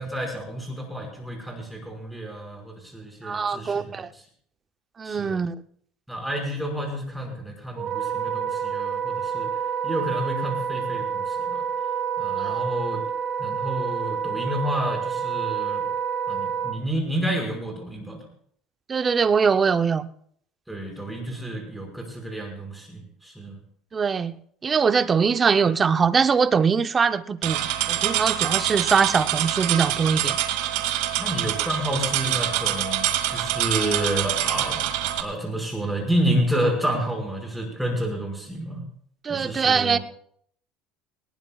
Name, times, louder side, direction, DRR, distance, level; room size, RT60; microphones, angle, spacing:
voice 1, 0.0-3.9 5.0-5.4 6.1-9.5 9.8-11.6 12.2-13.0 13.4-15.8 16.3-18.2 20.7-23.5 31.2-34.8 35.2-38.8 39.3-40.0, right 1 dB, 5° right, 1 dB, 5.3 m, -29 dB
voice 2, 3.2-4.1 5.0-5.6 12.4-12.6 18.9-20.1 23.9-24.4 24.6-30.4 39.2-40.0, right 5 dB, 25° right, 11 dB, 0.7 m, -22 dB
Wind instrument woodwind instrument, 7.8-16.8, right 7 dB, 45° right, 1.2 m, -28 dB
sound 1, 27.4-35.2, right 12 dB, 80° right, 1.8 m, -25 dB
20.0 x 19.0 x 2.4 m, 0.62 s
cardioid pair, 135°, 0 cm